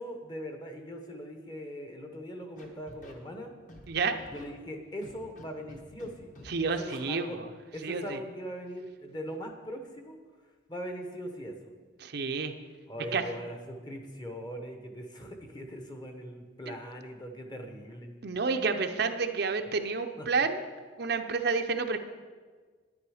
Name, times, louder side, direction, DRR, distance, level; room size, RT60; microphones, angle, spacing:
voice 1, 0.0-3.5 4.3-6.3 6.6-7.4 7.7-10.2 10.7-11.7 12.9-18.1 20.2-20.3, equal, 20° left, 4 dB, 1.0 m, -40 dB
Scratching (performance technique), 2.6-3.1 3.7-3.9 4.2-4.4 5.0-5.4 5.7-6.1 6.3-6.5 6.8-7.0, left 1 dB, 40° left, 1.3 m, -49 dB
voice 2, 3.9-4.2 6.5-7.5 7.8-8.2 12.0-12.5 13.1-13.2 18.2-20.6 21.0-22.0, right 4 dB, 55° right, 7 dB, 0.6 m, -29 dB
9.9 x 9.7 x 4.9 m, 1.5 s
head